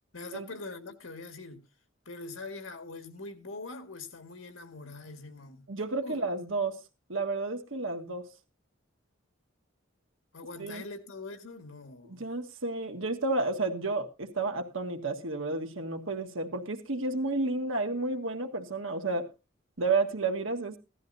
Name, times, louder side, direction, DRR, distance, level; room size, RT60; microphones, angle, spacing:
voice 1, 0.1-1.7 2.1-5.6 6.0-6.2 10.3-12.2, left 3 dB, 85° left, 1.9 m, -43 dB
voice 2, 5.7-6.8 7.1-8.3 10.6-10.8 12.1-19.3 19.8-20.8, right 3 dB, 80° right, 1.6 m, -31 dB
16.5 x 13.0 x 2.7 m
head